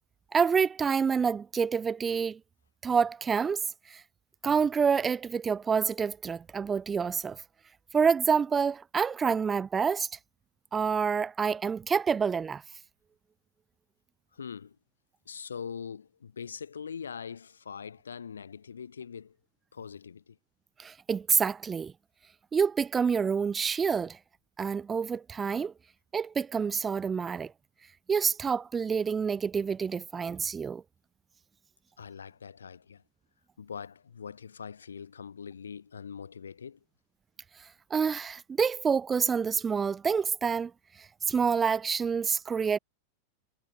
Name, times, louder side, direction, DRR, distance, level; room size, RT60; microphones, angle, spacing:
voice 1, 0.3-2.4 2.8-3.6 3.9-4.0 4.4-7.4 7.9-10.1 10.7-12.6 20.8-21.9 22.5-24.2 24.6-25.7 26.1-27.5 28.1-30.8 37.9-40.7 41.0-42.8, right 6 dB, 20° right, 0.4 m, -27 dB
voice 2, 14.3-14.8 15.2-19.4 19.7-20.4 32.0-33.0 33.6-36.8, left 6 dB, 70° left, 1.4 m, -42 dB
figure-of-eight pair, 90°, 0 cm